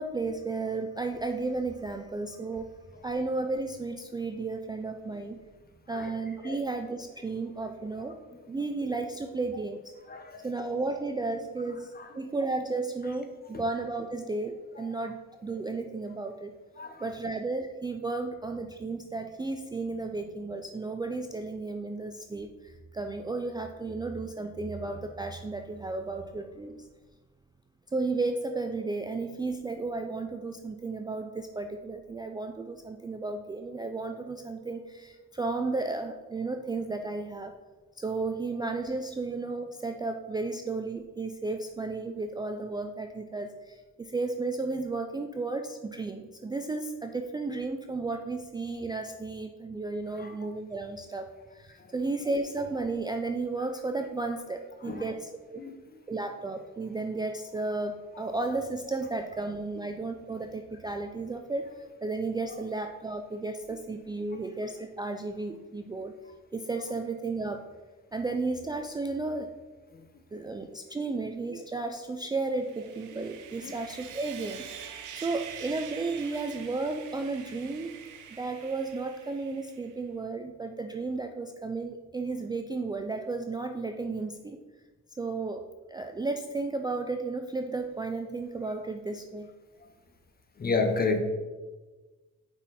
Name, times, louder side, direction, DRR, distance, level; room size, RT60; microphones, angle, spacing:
voice 1, 0.0-2.7 3.0-5.4 5.9-8.2 8.5-9.9 10.4-16.5 17.0-26.9 27.9-37.5 38.0-55.6 56.1-66.2 66.5-67.7 68.1-69.5 70.3-74.7 75.1-78.0 78.3-84.6 85.2-89.5, right 3 dB, 15° right, 5 dB, 0.3 m, -33 dB
voice 2, 10.1-10.5 11.9-12.1 13.5-13.6 14.8-14.9 16.8-17.0 50.1-50.3 51.7-51.9 54.8-55.1 55.6-55.8 58.1-58.3 62.5-62.6 69.9-70.1 73.6-73.7 88.6-88.7 89.8-89.9 90.6-91.2, left 4 dB, 30° left, 5 dB, 0.9 m, -32 dB
Sawing, 72.5-79.9, right 8 dB, 80° right, 0.7 m, -45 dB
5.8 x 4.1 x 4.1 m, 1.2 s
cardioid pair, 90°, 30 cm